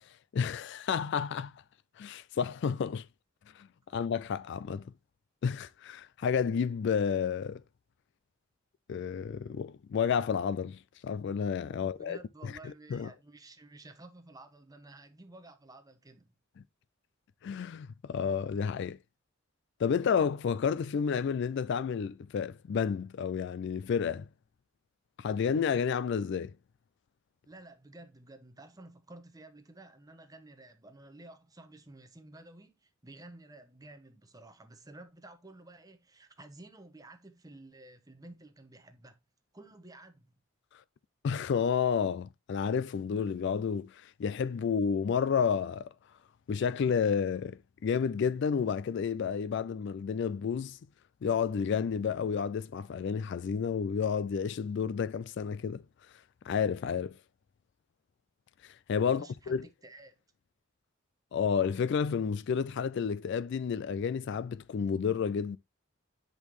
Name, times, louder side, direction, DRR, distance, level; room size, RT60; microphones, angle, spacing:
voice 1, 0.3-1.6 2.0-3.1 3.5-3.7 3.9-4.9 5.4-7.6 8.9-12.2 12.9-13.1 17.4-19.0 19.8-24.3 25.2-26.5 41.2-45.9 46.5-50.8 51.2-55.8 56.4-57.2 58.6-59.6 61.3-65.6, left 6 dB, 60° left, 0.3 m, -31 dB
voice 2, 11.7-16.3 27.5-39.2 39.5-40.4 59.0-60.1, right 2 dB, 20° right, 1.0 m, -52 dB
8.3 x 5.4 x 3.1 m
head